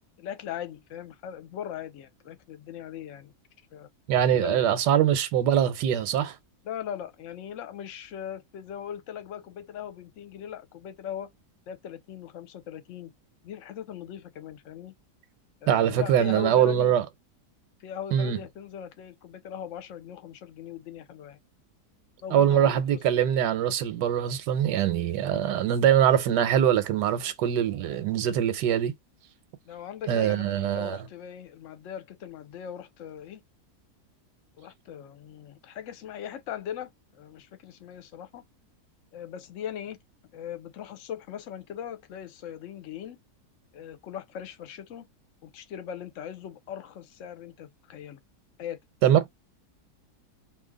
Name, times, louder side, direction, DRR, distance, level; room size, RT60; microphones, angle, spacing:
voice 1, 0.2-3.3 3.7-3.9 4.3-4.8 6.6-11.3 11.7-13.1 13.4-14.9 15.6-16.9 17.8-21.4 22.2-23.2 29.6-33.4 34.6-38.4 39.1-40.0 40.3-43.2 43.7-45.0 45.4-48.2 48.6-48.8, left 9 dB, 60° left, 0.9 m, -39 dB
voice 2, 4.1-6.4 15.7-17.0 18.1-18.4 22.3-28.9 30.1-31.0 49.0-49.2, right 10 dB, 90° right, 1.3 m, -23 dB
2.8 x 2.7 x 3.8 m
omnidirectional pair, 1.8 m